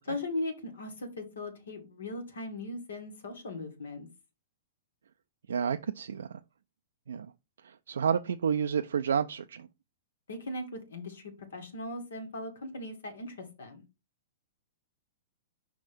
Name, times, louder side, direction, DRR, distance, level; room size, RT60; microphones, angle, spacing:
voice 1, 0.0-4.1 10.3-13.8, left 2 dB, 80° left, 1.8 m, -38 dB
voice 2, 5.5-6.3 7.1-7.3 7.6-9.7, right 7 dB, 80° right, 0.3 m, -30 dB
5.3 x 3.5 x 5.1 m
hypercardioid pair, 120°, 0 cm